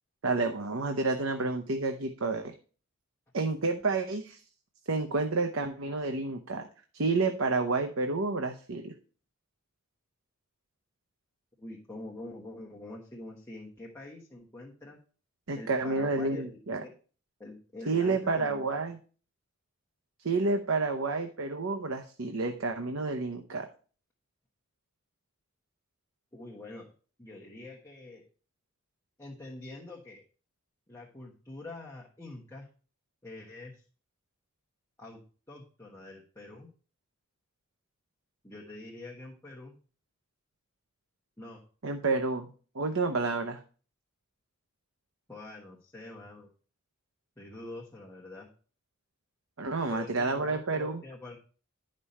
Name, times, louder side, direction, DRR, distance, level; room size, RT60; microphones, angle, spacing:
voice 1, 0.2-2.5 3.3-4.4 4.9-6.7 6.9-8.9 15.5-16.8 17.9-19.0 20.2-23.7 41.8-43.6 49.6-51.0, right 3 dB, 70° right, 5 dB, 0.8 m, -30 dB
voice 2, 11.6-15.0 15.6-16.9 17.4-18.6 26.3-26.9 27.2-28.2 29.2-30.2 30.9-32.7 33.2-33.8 35.0-35.2 35.5-36.7 38.4-39.7 41.4-41.6 45.3-46.5 47.4-48.5 49.9-51.4, left 2 dB, 10° left, -3 dB, 1.3 m, -45 dB
11.0 x 5.4 x 4.2 m, 0.40 s
head